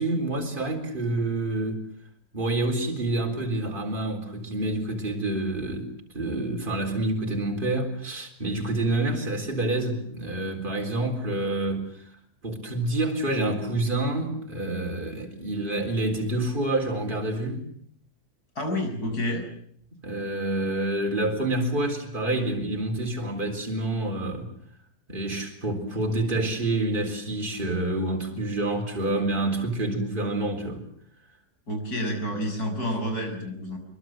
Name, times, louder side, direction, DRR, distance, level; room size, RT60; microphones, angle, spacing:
voice 1, 0.0-1.8 2.3-12.1 12.4-17.6 20.0-24.5 25.1-30.8, right 2 dB, 30° right, 4.3 m, -28 dB
voice 2, 18.6-19.5 31.7-33.8, left 1 dB, 75° left, 7.0 m, -29 dB
25.0 x 23.5 x 7.8 m
omnidirectional pair, 1.7 m